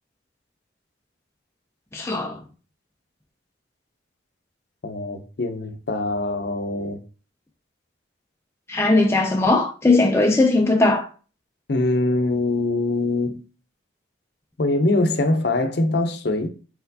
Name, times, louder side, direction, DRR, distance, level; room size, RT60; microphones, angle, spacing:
voice 1, 1.9-2.4 8.7-11.1, left 2 dB, 15° left, 0.4 m, -19 dB
voice 2, 4.8-7.0 11.7-13.4 14.6-16.5, left 2 dB, 55° left, 0.6 m, -23 dB
4.3 x 4.3 x 2.7 m
head